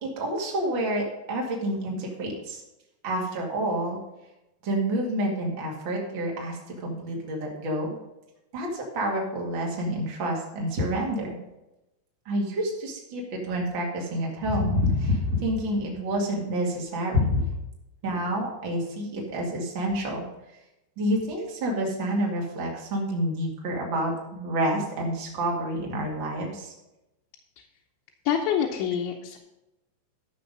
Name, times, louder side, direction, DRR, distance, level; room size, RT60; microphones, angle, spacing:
voice 1, 0.0-2.6 3.0-4.0 4.6-7.9 8.5-11.3 12.2-17.4 18.0-20.2 21.0-26.7, equal, 50° right, -1 dB, 1.4 m, -28 dB
voice 2, 28.3-29.4, left 8 dB, 80° left, 0 dB, 3.1 m, -26 dB
12.5 x 6.8 x 5.2 m, 0.95 s
omnidirectional pair, 5.4 m